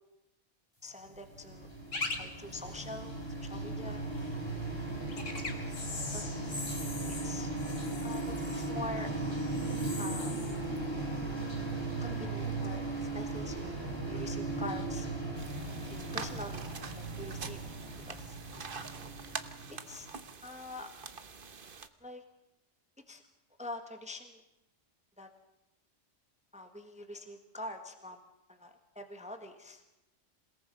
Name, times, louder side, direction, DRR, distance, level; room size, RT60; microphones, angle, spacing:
voice 1, 0.8-1.7 2.2-4.1 5.9-6.2 7.1-7.5 8.0-9.1 10.0-10.3 12.0-15.1 15.9-16.7 16.9-17.6 18.0-18.4 19.7-20.1 20.4-20.9 22.0-22.2 23.1-23.2 23.6-24.4 25.2-25.3 26.5-28.2 28.5-29.9, left 1 dB, 5° right, 6 dB, 1.5 m, -45 dB
sound 1, 1.1-20.1, right 2 dB, 20° left, 4.4 m, -37 dB
sound 2, 1.9-2.2 2.5-2.6 5.1-11.9 12.2-12.7 13.4-13.6, left 3 dB, 85° left, 2.5 m, -42 dB
sound 3, 15.4-21.9, right 5 dB, 45° right, 1.3 m, -45 dB
28.0 x 18.5 x 5.4 m, 0.92 s
omnidirectional pair, 1.3 m